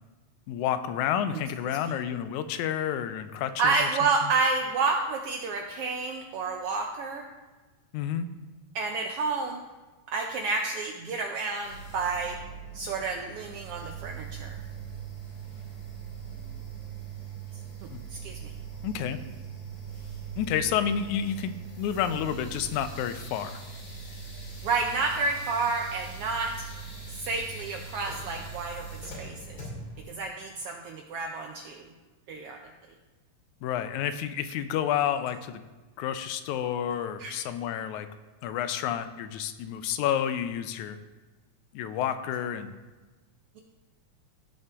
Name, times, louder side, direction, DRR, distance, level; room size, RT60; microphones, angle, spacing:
voice 1, 0.5-3.9 4.2-4.3 7.9-8.3 17.9-18.0 18.8-19.2 20.4-23.6 33.6-35.6 36.0-38.1 38.4-41.0 41.7-42.7, left 9 dB, 85° left, 10 dB, 2.0 m, -30 dB
voice 2, 3.6-7.3 8.7-9.6 10.1-12.4 12.7-14.6 17.8-18.5 24.6-26.6 27.1-29.6 30.1-31.9 32.3-32.6 37.2-37.4, right 4 dB, 75° right, 3 dB, 1.3 m, -30 dB
sound 1, 11.6-30.1, right 5 dB, 50° left, 3.4 m, -41 dB
16.0 x 5.6 x 3.5 m, 1.2 s
omnidirectional pair, 3.3 m